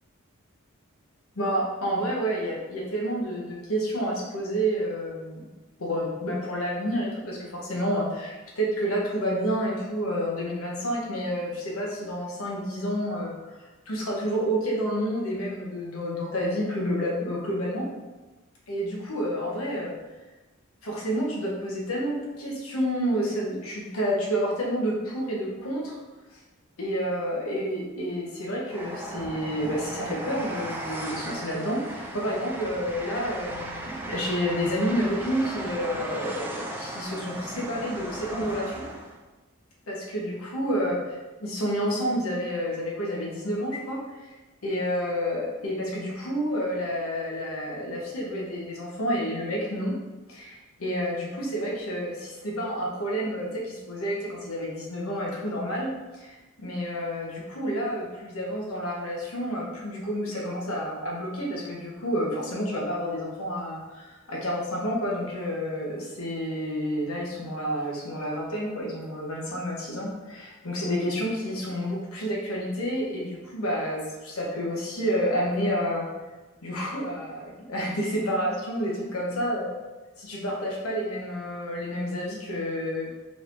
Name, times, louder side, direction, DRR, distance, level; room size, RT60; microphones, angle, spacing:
voice 1, 1.3-5.5 5.8-17.9 18.7-19.9 20.8-26.0 26.8-38.9 39.9-44.4 44.6-50.0 50.3-76.1 76.6-79.7 80.2-83.1, equal, 90° left, -3 dB, 0.9 m, -29 dB
Train, 28.7-39.2, right 1 dB, 10° right, 0.3 m, -36 dB
3.9 x 3.1 x 2.5 m, 1.2 s
head